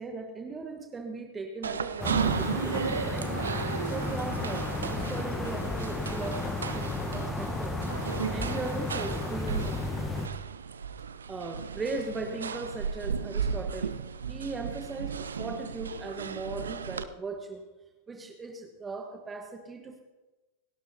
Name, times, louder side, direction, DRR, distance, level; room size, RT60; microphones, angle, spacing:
voice 1, 0.0-3.3 3.8-6.5 6.7-7.8 8.3-9.9 11.3-14.0 14.3-17.6 18.1-20.0, right 3 dB, 15° right, 4 dB, 1.4 m, -38 dB
sound 1, 1.6-17.0, right 6 dB, 70° right, 0.5 m, -35 dB
sound 2, 2.0-10.3, left 3 dB, 15° left, 1.2 m, -33 dB
28.5 x 12.0 x 2.8 m, 1.1 s
figure-of-eight pair, 90°, 0 cm